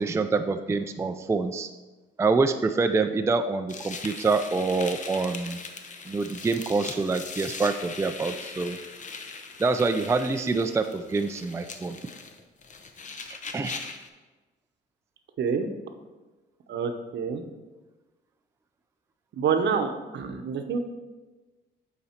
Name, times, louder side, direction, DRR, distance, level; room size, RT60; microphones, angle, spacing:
voice 1, 0.0-1.7 2.2-5.6 6.1-8.8 9.6-12.0 13.5-13.8, right 3 dB, 15° right, 7 dB, 0.4 m, -26 dB
sound 1, 3.7-14.1, left 4 dB, 40° left, 0.8 m, -40 dB
voice 2, 16.7-17.4 19.3-20.8, right 6 dB, 60° right, 6 dB, 0.8 m, -27 dB
8.5 x 4.1 x 4.4 m, 1.2 s
cardioid pair, 90°, 20 cm